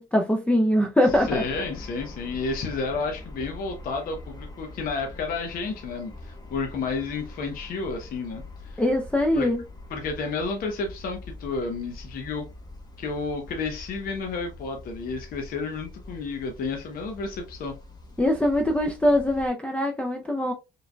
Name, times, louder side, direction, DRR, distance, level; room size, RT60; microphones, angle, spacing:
voice 1, 0.0-1.4 8.8-9.6 18.2-20.5, left 1 dB, 5° left, 0.5 m, -22 dB
sound 1, 1.1-19.5, left 2 dB, 25° left, 1.0 m, -43 dB
voice 2, 1.2-8.8 9.3-9.5 9.9-12.4 13.0-17.7, left 4 dB, 60° left, 0.8 m, -31 dB
4.7 x 3.2 x 2.2 m
cardioid pair, 110°, 17 cm